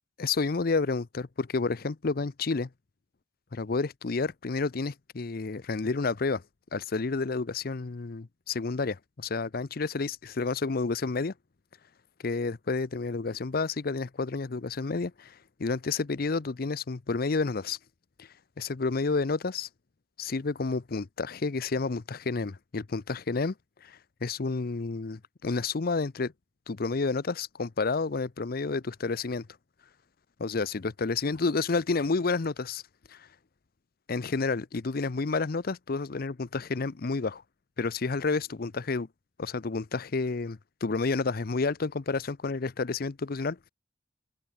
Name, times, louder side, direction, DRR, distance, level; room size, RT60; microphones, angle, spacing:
voice 1, 0.2-2.7 3.5-6.4 6.7-11.3 12.2-17.8 18.2-18.3 18.6-19.7 20.2-23.5 23.8-26.3 26.7-29.5 30.4-32.8 33.1-33.3 34.1-37.4 37.8-39.1 39.4-43.7, left 4 dB, 55° left, 0.6 m, -30 dB
head